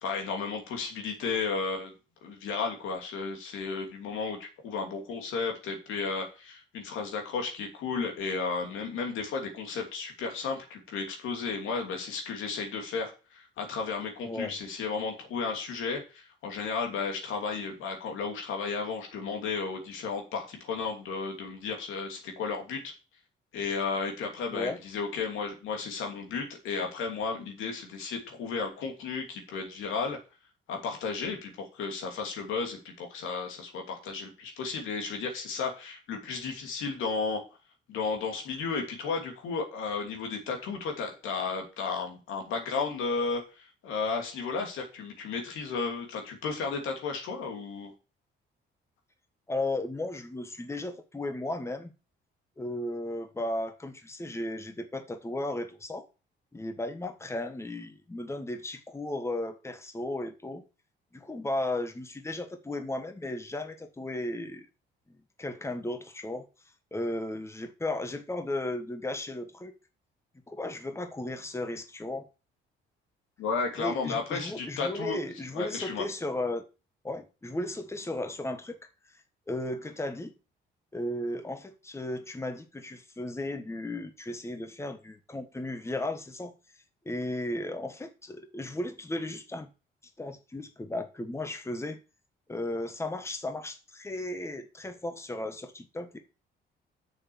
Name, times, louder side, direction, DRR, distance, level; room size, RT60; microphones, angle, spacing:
voice 1, 0.0-1.9 2.2-22.9 23.5-30.2 30.7-37.4 37.9-47.9 73.4-75.2 75.5-76.0, left 4 dB, 90° left, 2.8 m, -33 dB
voice 2, 49.5-51.9 52.6-56.1 56.5-60.6 61.1-64.7 65.4-66.4 66.9-69.7 70.5-72.3 73.8-76.6 77.0-78.8 79.5-80.3 80.9-86.5 87.0-89.7 90.2-92.0 92.5-96.2, left 1 dB, 15° left, 1.3 m, -35 dB
6.6 x 6.6 x 7.0 m
cardioid pair, 90°, 20 cm